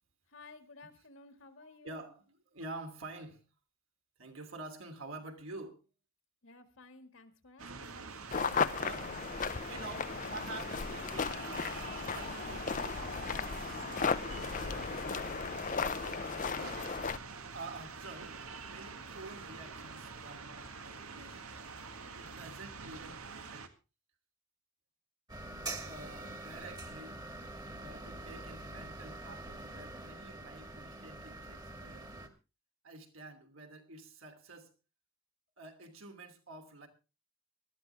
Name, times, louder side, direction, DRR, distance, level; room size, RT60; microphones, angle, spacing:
voice 1, 0.3-2.1 6.4-8.1, left 3 dB, 65° left, 8 dB, 1.9 m, -55 dB
voice 2, 1.6-3.5 4.2-5.8 8.8-9.1 9.7-15.0 15.8-16.3 17.5-18.4 18.7-21.7 22.1-23.7 25.8-27.2 27.8-32.1 32.8-34.7 35.6-36.9, right 2 dB, 70° right, 5 dB, 3.0 m, -49 dB
sound 1, 7.6-23.7, right 4 dB, 90° right, 1.8 m, -46 dB
sound 2, 8.3-17.2, left 5 dB, 40° left, 0.6 m, -35 dB
sound 3, 25.3-32.3, right 2 dB, 20° right, 1.7 m, -45 dB
19.0 x 13.0 x 3.4 m, 0.31 s
head